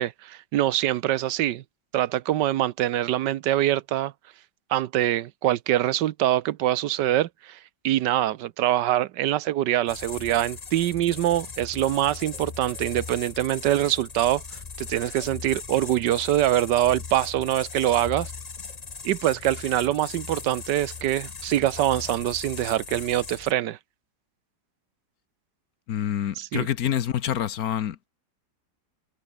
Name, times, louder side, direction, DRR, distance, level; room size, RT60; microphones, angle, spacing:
voice 1, 0.0-1.6 1.9-4.1 4.7-7.6 7.8-14.4 14.8-18.3 19.0-23.8 26.4-26.7, right 13 dB, 80° right, 1.4 m, -24 dB
sound 1, 9.9-23.5, left 5 dB, 30° left, 0.8 m, -38 dB
voice 2, 25.9-28.1, left 10 dB, 60° left, 1.2 m, -27 dB
omnidirectional pair, 1.9 m